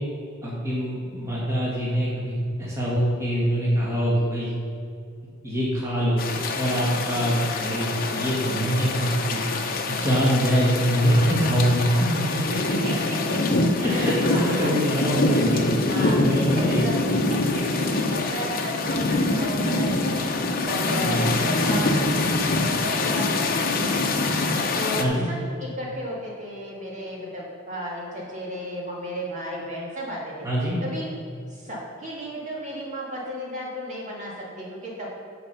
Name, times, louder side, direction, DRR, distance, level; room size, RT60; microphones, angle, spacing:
voice 1, 0.4-4.5 5.4-6.2 6.5-9.4 9.9-12.8 13.8-15.7 16.0-17.4 20.9-21.3 25.0-25.3 30.4-30.8, equal, 15° right, -7 dB, 2.0 m, -24 dB
sound 1, 6.2-25.0, left 2 dB, 45° left, 0.8 m, -25 dB
voice 2, 12.8-14.7 15.5-15.6 15.9-16.2 16.5-17.0 17.3-20.2 20.6-23.7 24.8-30.5 30.8-31.1 31.5-35.2, equal, 40° right, -4 dB, 2.3 m, -34 dB
13.5 x 4.9 x 5.6 m, 2.4 s
head